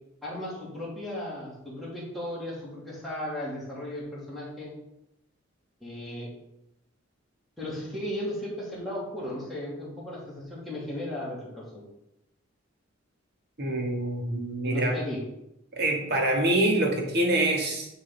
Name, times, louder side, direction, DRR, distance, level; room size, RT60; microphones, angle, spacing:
voice 1, 0.2-4.7 5.8-6.3 7.6-11.8 14.7-15.2, left 1 dB, ahead, -8 dB, 2.6 m, -35 dB
voice 2, 13.6-15.0 15.7-17.9, right 1 dB, 55° right, 1 dB, 1.5 m, -25 dB
9.6 x 4.0 x 3.9 m, 0.84 s
head